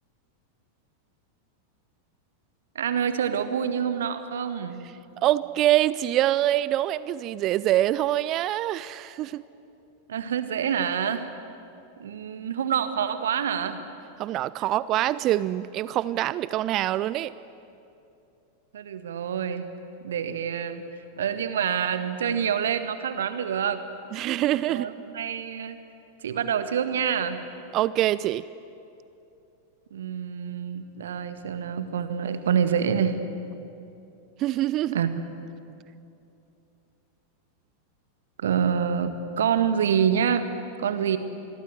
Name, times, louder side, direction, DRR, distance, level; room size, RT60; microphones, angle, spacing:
voice 1, 2.7-4.8 10.1-11.3 12.0-13.8 18.7-19.7 20.0-20.8 21.2-23.8 24.7-25.8 26.2-27.4 29.9-33.2 34.9-35.1 38.4-40.4 40.8-41.2, right 8 dB, 65° right, 10 dB, 1.7 m, -26 dB
voice 2, 5.2-9.4 14.2-17.3 24.1-24.9 27.7-28.4 34.4-35.0, right 14 dB, 35° right, 18 dB, 0.5 m, -25 dB
27.0 x 21.5 x 8.0 m, 2.7 s
figure-of-eight pair, 90°, 0 cm